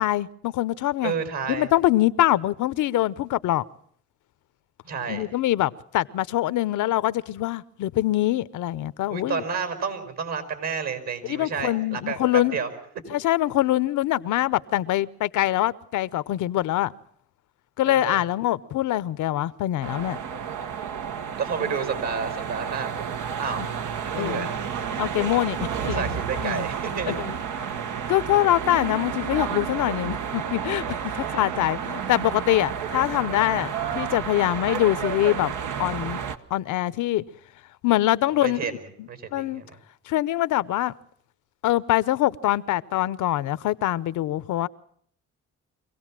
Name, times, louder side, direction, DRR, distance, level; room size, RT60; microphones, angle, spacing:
voice 1, 0.0-1.1 1.5-3.6 5.1-9.4 11.3-12.6 13.1-16.9 17.8-20.2 21.6-21.7 24.1-24.5 25.0-26.6 27.1-27.3 28.1-35.5 35.8-36.2 36.5-37.2 37.8-39.6 40.1-40.9 41.6-44.7, left 14 dB, 80° left, 0.8 m, -24 dB
voice 2, 1.0-1.7 4.8-5.3 9.1-12.7 17.8-18.2 21.4-23.1 23.4-23.6 24.1-24.6 25.7-27.2 31.2-31.4 38.4-38.8 39.1-39.8, right 6 dB, 65° right, 5.1 m, -30 dB
sound 1, 19.8-36.4, right 7 dB, 80° right, 1.3 m, -31 dB
25.0 x 17.0 x 7.5 m
cardioid pair, 90°, 30 cm